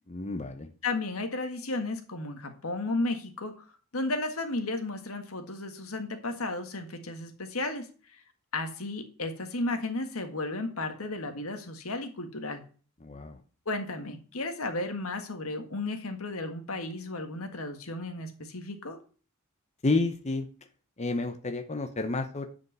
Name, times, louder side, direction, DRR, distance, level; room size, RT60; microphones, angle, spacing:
voice 1, 0.1-0.7 13.0-13.4 19.8-20.5 21.0-22.5, left 3 dB, 30° left, 7 dB, 0.8 m, -30 dB
voice 2, 0.8-3.7 3.9-7.9 8.5-12.6 13.6-19.0, left 2 dB, 90° left, 6 dB, 1.6 m, -34 dB
9.5 x 5.2 x 6.7 m, 0.39 s
head